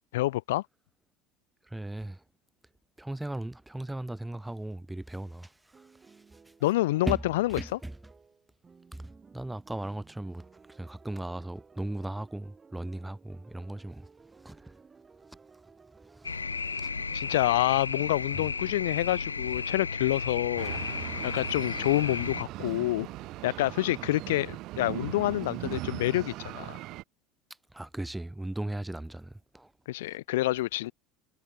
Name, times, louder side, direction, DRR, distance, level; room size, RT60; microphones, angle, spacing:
voice 1, 0.1-0.6 6.6-7.8 17.1-20.8 21.2-23.1 23.4-26.7 29.9-30.9, left 17 dB, 65° left, 0.4 m, -28 dB
voice 2, 1.7-2.2 3.0-5.5 6.1-6.2 7.1-7.2 7.6-7.9 8.9-14.1 14.4-14.7 16.1-16.4 16.8-17.1 18.3-18.4 27.7-29.7, right 1 dB, 5° right, 0.5 m, -37 dB
sound 1, 5.7-24.4, right 5 dB, 20° right, 4.9 m, -57 dB
sound 2, 16.2-22.4, left 4 dB, 80° left, 1.0 m, -34 dB
sound 3, 20.6-27.0, right 18 dB, 50° right, 1.9 m, -39 dB
figure-of-eight pair, 70°, 0 cm